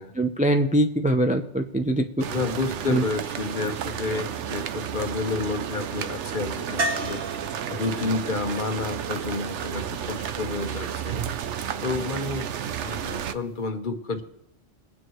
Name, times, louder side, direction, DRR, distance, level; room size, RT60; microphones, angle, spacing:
voice 1, 0.2-2.3 2.9-3.0, right 1 dB, 10° right, 5 dB, 0.3 m, -23 dB
sound 1, 2.2-13.3, right 9 dB, 80° right, 1.0 m, -32 dB
voice 2, 2.3-7.2 7.7-11.2 11.8-12.5 12.8-14.2, left 3 dB, 45° left, 7 dB, 1.0 m, -30 dB
sound 2, 6.8-10.7 13.3-13.4 13.7-13.8, right 2 dB, 55° right, 1.3 m, -35 dB
22.0 x 9.4 x 3.1 m, 0.76 s
omnidirectional pair, 1.2 m